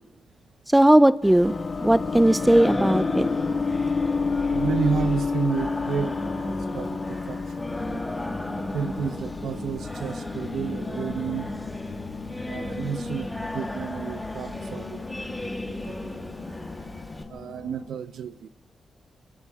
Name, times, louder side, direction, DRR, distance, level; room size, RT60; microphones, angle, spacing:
voice 1, 0.7-1.5 1.8-3.3, right 1 dB, 10° right, 0.6 m, -18 dB
Singing, 1.2-17.2, left 1 dB, 10° left, 3.3 m, -35 dB
sound 1, 1.4-17.9, left 4 dB, 55° left, 1.3 m, -32 dB
voice 2, 4.5-7.6 8.6-11.5 12.5-15.0 15.4-16.3 17.3-18.5, right 6 dB, 80° right, 0.8 m, -31 dB
28.5 x 27.5 x 3.6 m
cardioid pair, 60°, 0 cm